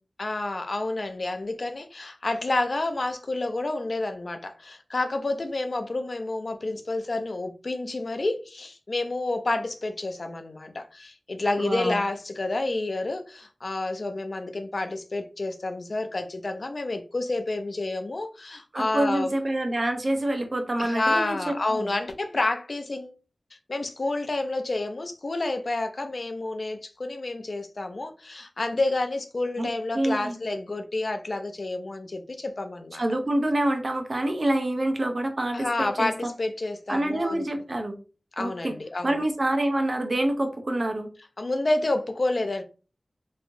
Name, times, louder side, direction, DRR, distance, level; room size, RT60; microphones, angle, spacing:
voice 1, 0.2-19.3 20.8-23.2 23.7-33.0 35.5-37.4 38.4-39.2 41.4-42.6, left 2 dB, 65° left, 0.4 m, -29 dB
voice 2, 11.6-12.0 18.7-21.9 29.6-29.7 29.9-30.3 33.0-36.3 36.9-38.0 38.4-38.7 39.0-41.1, right 1 dB, 50° right, 0.6 m, -26 dB
3.0 x 2.7 x 2.6 m
wide cardioid pair, 70°, 0 cm